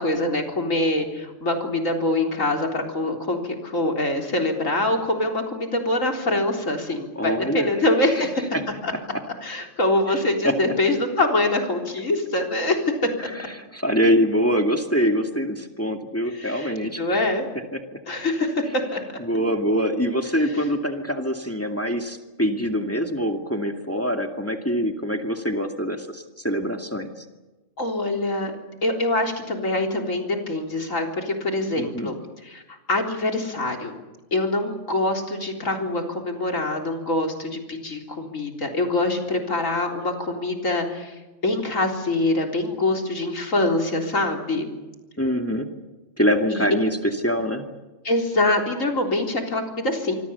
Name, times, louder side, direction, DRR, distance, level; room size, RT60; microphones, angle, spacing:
voice 1, 0.0-8.5 8.8-8.9 9.4-13.3 16.3-17.5 18.1-19.0 27.8-28.5 28.8-32.2 32.5-34.0 34.3-41.2 41.4-44.7 46.5-46.6 48.0-50.1, left 2 dB, 80° left, 2 dB, 4.2 m, -24 dB
voice 2, 7.2-7.7 8.0-8.3 8.5-8.6 9.1-9.2 10.1-10.6 13.2-17.2 17.7-17.8 19.2-27.1 31.7-32.1 45.2-45.7 46.2-47.7, equal, 10° left, 4 dB, 2.3 m, -24 dB
26.0 x 25.0 x 7.0 m, 1.1 s
omnidirectional pair, 1.3 m